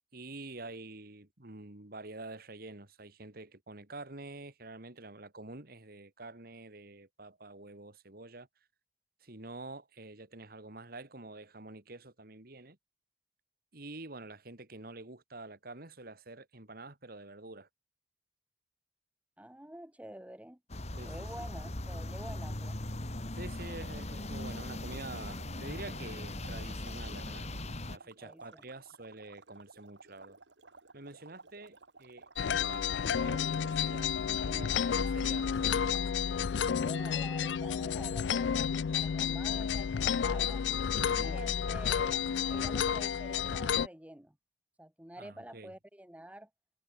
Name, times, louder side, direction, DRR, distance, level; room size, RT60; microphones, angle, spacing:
voice 1, 0.1-8.5 9.2-12.8 13.7-17.7 21.0-21.3 23.3-30.4 30.9-34.2 34.4-36.1 40.9-41.4 45.2-45.7, right 2 dB, 55° right, 2.5 m, -47 dB
voice 2, 19.4-20.6 21.0-22.8 28.2-28.6 36.8-40.6 41.2-42.2 42.5-44.3 44.8-46.5, right 1 dB, 10° right, 1.5 m, -48 dB
sound 1, 20.7-28.0, left 1 dB, 40° left, 2.0 m, -39 dB
sound 2, 23.5-36.3, right 3 dB, 85° right, 3.4 m, -56 dB
sound 3, 32.4-43.9, left 7 dB, 90° left, 0.4 m, -31 dB
head